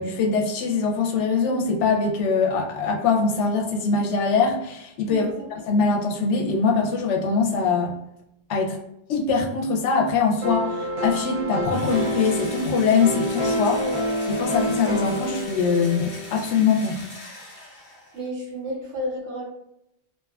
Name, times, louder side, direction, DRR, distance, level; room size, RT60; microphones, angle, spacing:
voice 1, 0.0-5.3 5.7-7.9 8.5-8.8 9.1-13.8 14.4-17.0, left 4 dB, 80° left, 0 dB, 0.9 m, -22 dB
voice 2, 5.1-5.5 13.8-14.0 18.1-19.4, equal, 80° right, -4 dB, 1.2 m, -31 dB
sound 1, 10.4-16.3, equal, 35° right, 0.6 m, -28 dB
Engine / Drill, 11.7-18.3, left 2 dB, 40° left, 0.6 m, -41 dB
2.7 x 2.2 x 2.3 m, 0.81 s
omnidirectional pair, 1.2 m